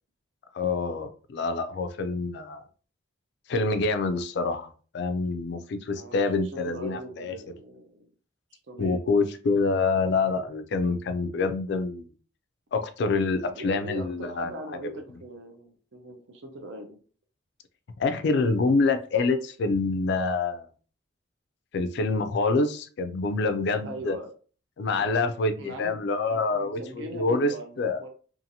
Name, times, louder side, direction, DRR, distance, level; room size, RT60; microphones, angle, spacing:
voice 1, 0.5-2.6 3.5-7.4 8.8-12.1 12.7-14.5 14.8-14.9 18.0-20.7 21.7-24.2 24.8-28.0, left 3 dB, 55° left, 9 dB, 0.3 m, -26 dB
voice 2, 5.9-8.1 8.5-9.0 13.4-17.0 23.8-24.3 24.9-25.1 25.6-28.1, right 1 dB, 65° right, 5 dB, 0.6 m, -41 dB
2.7 x 2.5 x 2.6 m, 0.40 s
head